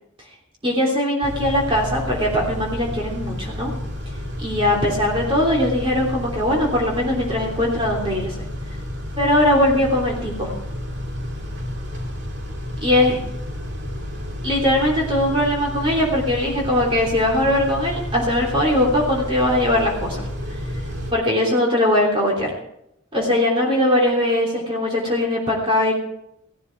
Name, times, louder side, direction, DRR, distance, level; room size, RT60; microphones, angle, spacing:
voice 1, 0.6-3.7 4.4-8.3 9.2-10.5 12.8-13.2 14.4-20.3 21.1-22.5 23.1-25.9, left 1 dB, 25° right, -2 dB, 3.3 m, -20 dB
Car / Idling / Accelerating revving vroom, 1.2-21.1, left 1 dB, 55° right, 2.4 m, -31 dB
16.5 x 13.0 x 4.7 m, 0.78 s
head